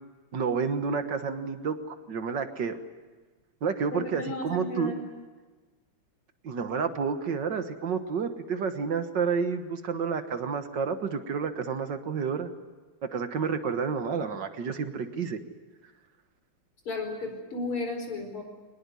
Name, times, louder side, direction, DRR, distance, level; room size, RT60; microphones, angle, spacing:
voice 1, 0.3-2.8 3.6-4.9 6.4-12.5 13.1-15.4, right 5 dB, 60° right, 8 dB, 1.9 m, -30 dB
voice 2, 3.9-5.0 16.9-18.4, left 2 dB, 85° left, 4 dB, 5.5 m, -34 dB
23.0 x 20.0 x 9.8 m, 1.3 s
omnidirectional pair, 2.4 m